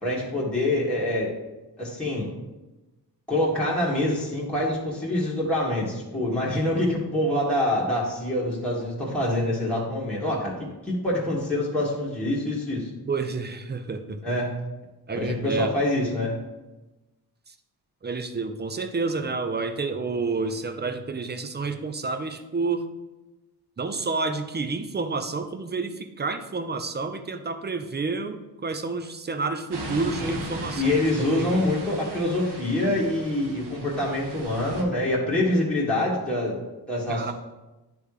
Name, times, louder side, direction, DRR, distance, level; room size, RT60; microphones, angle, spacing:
voice 1, 0.0-1.3 1.8-2.3 3.3-10.6 10.8-12.9 14.2-14.5 15.1-16.4 30.2-30.4 30.7-36.6 36.9-37.3, left 1 dB, 5° left, -6 dB, 2.0 m, -25 dB
voice 2, 13.1-14.3 15.1-15.7 17.5-17.6 18.0-22.8 23.8-31.7 37.1-37.3, right 4 dB, 25° right, 8 dB, 0.6 m, -30 dB
sound 1, 29.7-34.8, right 2 dB, 75° right, 1.4 m, -37 dB
10.0 x 3.4 x 4.8 m, 1.1 s
cardioid pair, 95°, 40 cm